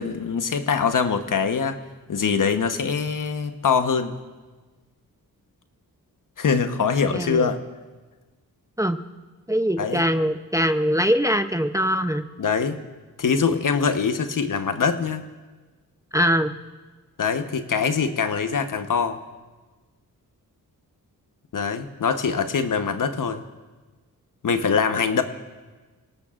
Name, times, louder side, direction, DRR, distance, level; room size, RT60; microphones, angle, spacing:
voice 1, 0.0-1.8 2.1-4.2 6.4-7.6 9.8-10.0 12.4-12.8 13.2-15.2 17.2-19.2 21.5-23.4 24.4-25.2, left 6 dB, 55° left, 8 dB, 1.1 m, -23 dB
voice 2, 7.1-7.5 8.8-9.0 9.5-12.2 16.1-16.5, equal, 10° right, 8 dB, 0.7 m, -22 dB
29.0 x 18.0 x 2.5 m, 1.3 s
cardioid pair, 80°, 37 cm